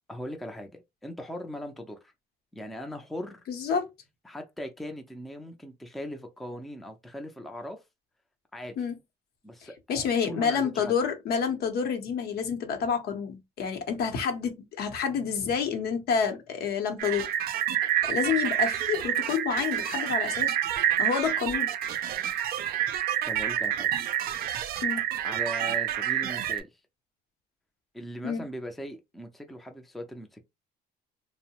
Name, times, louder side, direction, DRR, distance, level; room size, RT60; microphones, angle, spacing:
voice 1, 0.1-2.1 2.5-3.4 4.2-7.8 8.5-8.8 9.4-10.9 23.3-23.9 25.2-26.7 27.9-30.4, equal, ahead, 0.4 m, -39 dB
voice 2, 3.5-3.9 8.8-8.9 9.6-17.3 18.1-20.5 21.0-21.7 24.8-25.1 28.2-28.4, left 6 dB, 65° left, 0.8 m, -29 dB
sound 1, 17.0-26.6, right 11 dB, 65° right, 0.4 m, -28 dB
2.6 x 2.0 x 2.9 m
cardioid pair, 110°, 17 cm